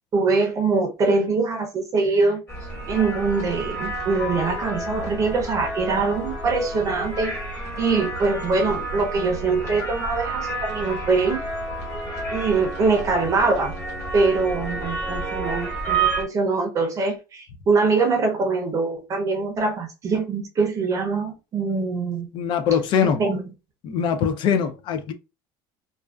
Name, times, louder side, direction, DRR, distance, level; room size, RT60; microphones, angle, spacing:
voice 1, 0.1-2.4 2.9-7.3 7.8-11.4 12.3-13.7 14.1-22.3 23.0-23.4, right 4 dB, 30° right, 0.6 m, -23 dB
sound 1, 2.5-16.2, right 3 dB, 25° left, 1.2 m, -30 dB
voice 2, 22.3-23.2 23.8-25.1, left 7 dB, 50° left, 0.4 m, -22 dB
2.4 x 2.2 x 2.2 m
cardioid pair, 140°, 10 cm